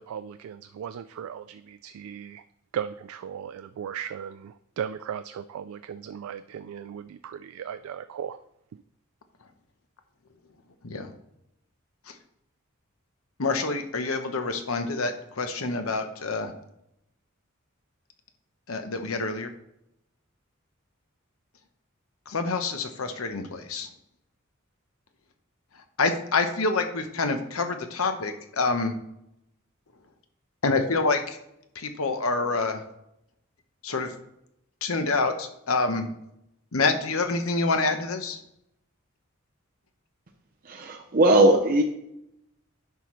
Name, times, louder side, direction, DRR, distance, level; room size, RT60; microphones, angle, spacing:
voice 1, 0.0-2.4 2.7-8.4 8.7-8.8, right 8 dB, 85° right, 12 dB, 0.3 m, -37 dB
voice 2, 13.4-16.5 18.7-19.5 22.3-23.9 26.0-28.9 30.6-31.4 31.7-32.8 33.8-34.1 34.8-36.1 36.7-38.4, left 3 dB, 85° left, 7 dB, 0.9 m, -27 dB
voice 3, 40.6-41.8, right 1 dB, 45° right, 0 dB, 0.8 m, -19 dB
10.5 x 5.6 x 3.2 m, 0.81 s
head